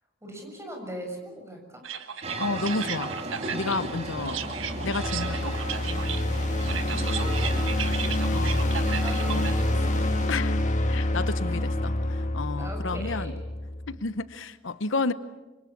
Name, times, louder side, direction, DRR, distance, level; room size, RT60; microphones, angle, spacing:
voice 1, 0.2-1.8 6.7-7.6 9.0-10.0 11.4-11.5 12.6-13.3, right 1 dB, 15° right, 2 dB, 6.8 m, -40 dB
sound 1, 1.8-9.6, right 8 dB, 85° right, 1.6 m, -36 dB
sound 2, 2.2-10.3, right 2 dB, 35° right, 3.3 m, -36 dB
voice 2, 2.4-3.1 3.5-4.4 4.8-5.6 8.3-8.8 9.3-9.5 10.3-10.6 10.9-13.3 13.9-15.1, left 3 dB, 75° left, 13 dB, 0.9 m, -31 dB
sound 3, 3.8-14.0, left 1 dB, 40° left, 1.7 m, -27 dB
27.0 x 24.5 x 7.3 m, 1.1 s
head